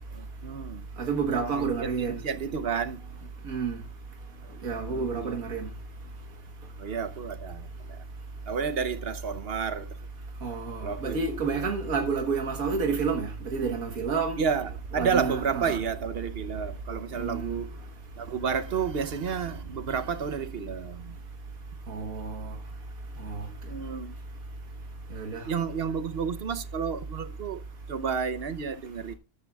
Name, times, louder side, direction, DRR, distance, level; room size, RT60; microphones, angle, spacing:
voice 1, 0.1-0.8 1.3-3.0 4.8-5.4 6.8-8.0 8.5-10.0 10.8-11.7 14.4-17.8 18.2-21.1 23.7-24.1 25.5-29.1, right 6 dB, 55° right, 0.8 m, -31 dB
voice 2, 1.0-2.2 3.5-3.8 4.6-5.7 10.4-14.4 14.9-15.8 17.2-17.6 21.9-22.5 23.2-23.5 25.1-25.4, right 5 dB, 85° right, 1.8 m, -29 dB
13.5 x 11.0 x 2.3 m
omnidirectional pair, 1.5 m